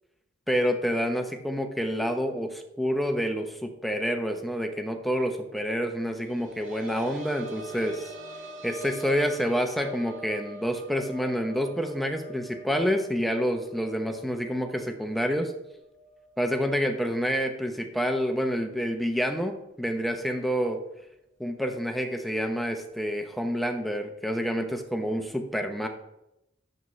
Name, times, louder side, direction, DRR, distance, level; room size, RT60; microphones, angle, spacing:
voice 1, 0.5-8.1 8.6-15.5 16.4-20.8 21.4-25.9, equal, ahead, 4 dB, 0.7 m, -28 dB
sound 1, 6.0-17.5 17.8-17.9 19.5-19.6, right 1 dB, 80° right, 1.6 m, -45 dB
10.5 x 7.5 x 3.2 m, 0.87 s
head